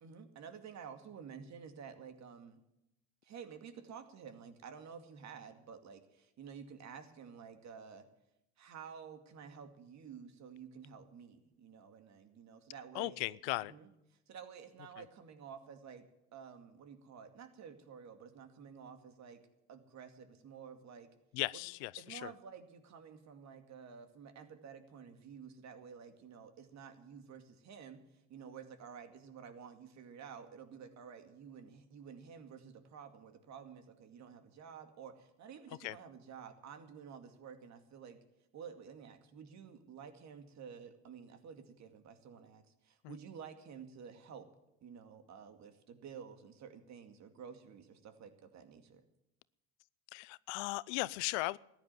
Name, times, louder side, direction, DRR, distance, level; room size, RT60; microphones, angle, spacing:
voice 1, 0.0-2.6 3.2-8.0 8.6-13.4 13.7-13.9 14.3-16.1 16.3-19.4 19.7-21.1 21.5-21.6 22.0-28.0 28.3-38.2 38.5-44.5 44.8-49.0, right 7 dB, 55° right, 8 dB, 2.3 m, -51 dB
voice 2, 12.9-13.7 21.3-22.3 35.8-36.0 43.0-43.2 50.1-51.6, left 22 dB, 90° left, 22 dB, 0.5 m, -37 dB
14.5 x 10.5 x 9.2 m, 0.87 s
supercardioid pair, 90°, 33 cm